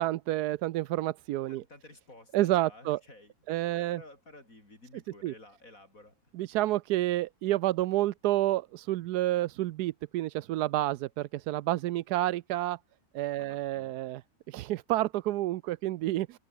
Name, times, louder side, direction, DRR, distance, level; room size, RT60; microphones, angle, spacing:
voice 1, 0.0-1.6 2.3-3.0 3.5-4.0 5.2-5.3 6.3-12.8 13.1-14.2 14.5-16.4, right 15 dB, 85° right, 1.1 m, -29 dB
voice 2, 1.5-6.2 13.4-14.0, left 2 dB, 60° left, 6.6 m, -53 dB
omnidirectional pair, 1.7 m